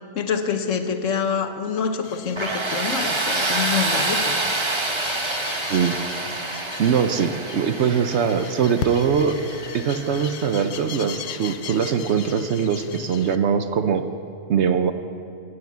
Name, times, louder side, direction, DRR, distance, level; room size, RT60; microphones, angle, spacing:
voice 1, 0.1-4.4, left 6 dB, 60° left, 7 dB, 1.2 m, -26 dB
sound 1, 2.0-13.4, left 8 dB, 90° left, 0.4 m, -38 dB
Tools, 2.4-11.1, right 2 dB, 25° right, 0.8 m, -27 dB
voice 2, 6.8-9.4 9.7-14.0 14.5-14.9, right 7 dB, 60° right, 9 dB, 0.8 m, -22 dB
15.5 x 9.5 x 8.2 m, 2.5 s
omnidirectional pair, 1.6 m